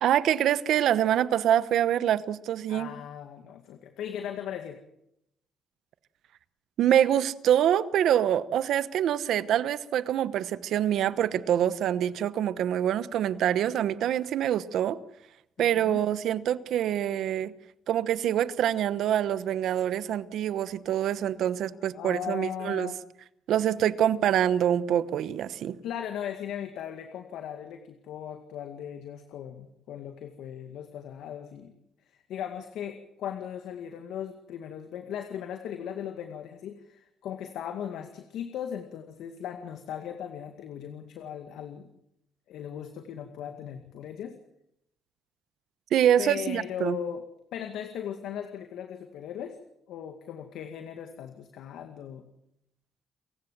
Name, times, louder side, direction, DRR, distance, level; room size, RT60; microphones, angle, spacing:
voice 1, 0.0-2.9 6.8-15.0 15.6-17.5 17.9-22.9 23.5-25.8 45.9-47.0, right 10 dB, 75° right, 15 dB, 1.0 m, -25 dB
voice 2, 2.7-4.8 15.6-16.0 21.9-23.0 25.8-31.8 32.1-41.9 42.5-44.4 46.2-47.2 47.5-49.6 49.9-52.2, left 9 dB, 85° left, 6 dB, 2.0 m, -38 dB
29.0 x 16.0 x 7.5 m, 0.81 s
cardioid pair, 90°, 0 cm